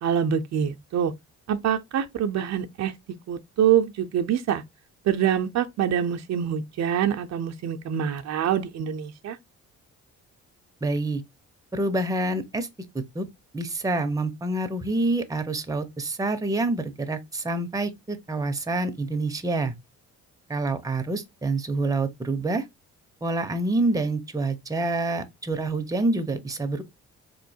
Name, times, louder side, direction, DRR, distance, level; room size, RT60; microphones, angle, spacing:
voice 1, 0.0-1.1 1.5-2.9 3.3-4.6 5.1-9.4, right 9 dB, 60° right, 0.6 m, -25 dB
voice 2, 10.8-11.2 11.7-12.7 12.9-13.3 13.5-19.7 20.5-22.6 23.2-26.8, right 2 dB, 10° right, 0.6 m, -27 dB
4.1 x 3.0 x 2.7 m
cardioid pair, 90°, 30 cm